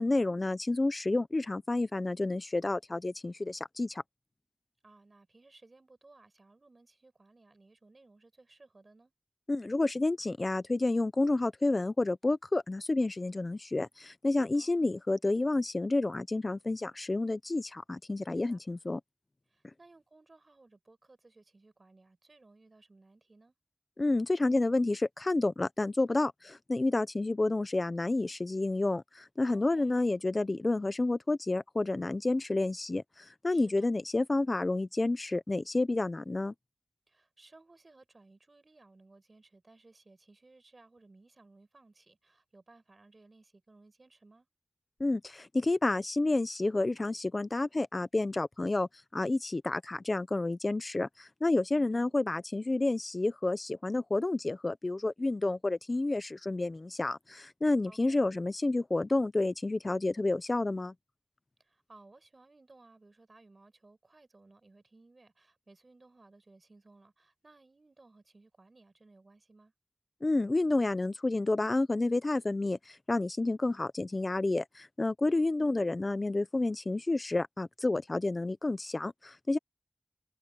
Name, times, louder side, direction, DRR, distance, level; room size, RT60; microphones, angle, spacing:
voice 1, 0.0-4.0 9.5-19.0 24.0-36.5 45.0-60.9 70.2-79.6, left 2 dB, 50° left, 0.8 m, -30 dB
voice 2, 4.8-9.1 14.5-14.9 18.3-18.6 19.5-23.5 29.5-29.9 33.5-33.9 37.1-44.5 51.7-52.2 57.9-58.2 61.6-69.7 75.2-75.5, right 3 dB, 60° right, 6.7 m, -60 dB
wide cardioid pair, 65°, 0 cm